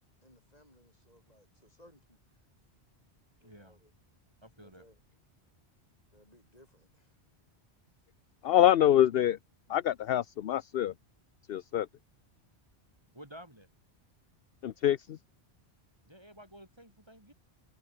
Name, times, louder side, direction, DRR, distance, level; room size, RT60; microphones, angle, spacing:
voice 1, 0.2-2.2 3.4-3.9 4.6-5.0 6.1-7.2, left 1 dB, 35° left, 7.6 m, -62 dB
voice 2, 3.4-3.8 4.4-4.9 13.1-13.7 16.1-17.3, equal, 25° right, 3.4 m, -52 dB
voice 3, 8.4-9.4 9.7-10.9 11.5-11.9 14.6-15.2, left 11 dB, 65° left, 0.8 m, -25 dB
omnidirectional pair, 1.1 m